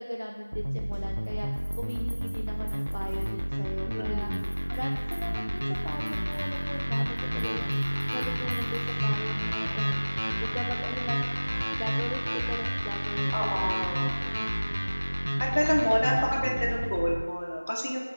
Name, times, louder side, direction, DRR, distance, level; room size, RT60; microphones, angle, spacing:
voice 1, 0.0-1.5 1.8-4.3 4.7-7.7 8.1-10.0 10.4-11.2 11.8-13.8 14.2-14.3, equal, 75° left, 1 dB, 0.3 m, -38 dB
sound 1, 0.5-17.3, equal, 90° right, 0.3 m, -30 dB
sound 2, 0.9-3.7 4.2-9.3, equal, 20° right, 1.1 m, -52 dB
voice 2, 3.9-4.5 13.3-14.1 15.4-18.0, equal, 50° left, -2 dB, 0.8 m, -28 dB
5.8 x 2.4 x 3.2 m, 1.4 s
figure-of-eight pair, 180°, 0 cm